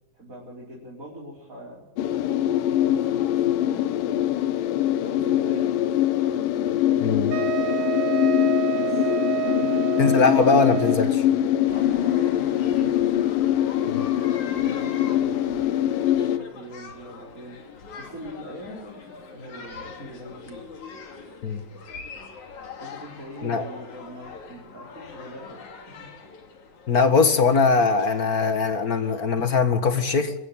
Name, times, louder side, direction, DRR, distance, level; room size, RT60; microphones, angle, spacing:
voice 1, 0.1-1.9 2.6-4.2 4.9-5.7 6.1-7.4 8.7-9.1 9.5-10.5 11.7-13.0 14.4-17.6 18.0-20.6 22.8-25.6 26.0-26.1, equal, 25° right, -4 dB, 5.2 m, -42 dB
sound 1, 2.0-16.4, left 12 dB, 85° left, 2.7 m, -23 dB
voice 2, 7.0-7.3 10.0-11.2 13.9-14.1 21.4-21.6 23.4-23.7 26.9-30.3, left 4 dB, 40° left, 8 dB, 1.3 m, -21 dB
Wind instrument woodwind instrument, 7.3-11.2, right 19 dB, 90° right, 2.8 m, -28 dB
sound 2, 11.7-29.6, left 5 dB, 60° left, 3.9 m, -43 dB
25.5 x 14.5 x 8.9 m, 0.83 s
omnidirectional pair, 3.9 m